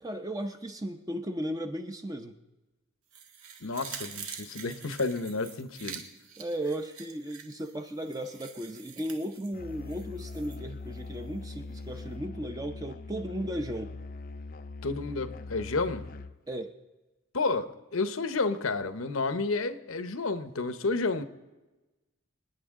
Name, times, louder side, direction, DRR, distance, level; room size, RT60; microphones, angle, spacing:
voice 1, 0.0-2.4 6.4-13.9 16.5-16.8, right 1 dB, 15° right, 5 dB, 0.6 m, -35 dB
sound 1, 3.1-10.6 10.9-11.0, right 7 dB, 85° right, 1.7 m, -46 dB
voice 2, 3.6-6.0 14.8-16.1 17.3-21.2, left 3 dB, 75° left, 11 dB, 0.9 m, -31 dB
Musical instrument, 9.5-16.4, left 3 dB, 40° left, 0.4 m, -42 dB
27.0 x 9.9 x 3.7 m, 1.1 s
head